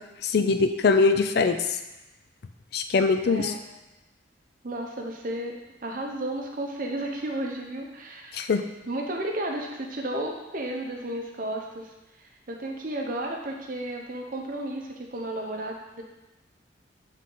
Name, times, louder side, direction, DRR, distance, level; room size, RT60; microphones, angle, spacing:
voice 1, 0.2-1.6 2.7-3.5 8.3-8.6, left 4 dB, 55° left, 8 dB, 0.4 m, -22 dB
voice 2, 3.3-3.6 4.6-5.6 5.8-8.5 8.9-11.9 12.2-16.0, right 1 dB, 45° right, 1 dB, 0.8 m, -33 dB
7.5 x 3.6 x 3.8 m, 1.0 s
head